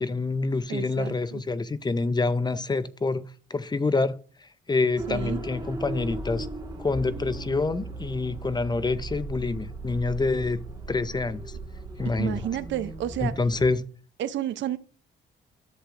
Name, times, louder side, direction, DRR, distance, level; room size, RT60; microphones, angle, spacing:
voice 1, 0.0-6.5 6.8-10.6 10.9-11.6 12.0-12.4 13.2-13.9, left 3 dB, 20° left, 0.5 m, -27 dB
voice 2, 0.7-1.4 5.1-5.4 12.0-13.3 14.2-14.8, right 12 dB, 70° right, 0.6 m, -31 dB
sound 1, 5.0-13.7, right 2 dB, 20° right, 1.7 m, -38 dB
Piano, 6.9-13.2, right 4 dB, 70° left, 1.8 m, -42 dB
11.5 x 7.2 x 2.5 m
cardioid pair, 90°, 20 cm